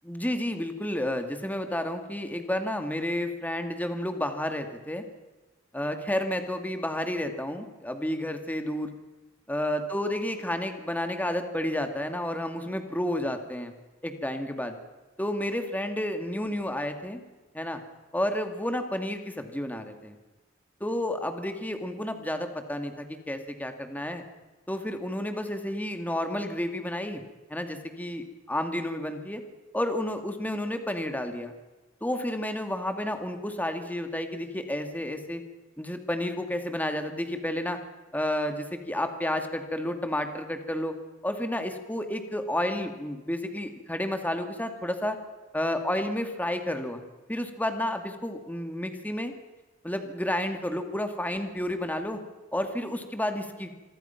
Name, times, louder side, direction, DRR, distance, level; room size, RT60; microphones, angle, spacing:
voice 1, 0.0-5.0 5.7-8.9 9.5-13.7 14.0-14.8 15.2-17.2 17.5-17.8 18.1-20.2 20.8-24.2 24.7-27.2 27.5-29.4 29.7-31.5 32.0-35.4 35.8-37.8 38.1-40.9 41.2-45.2 45.5-47.0 47.3-49.3 49.8-52.2 52.5-53.7, left 1 dB, 10° left, 6 dB, 2.4 m, -31 dB
27.0 x 22.5 x 6.0 m, 1.2 s
head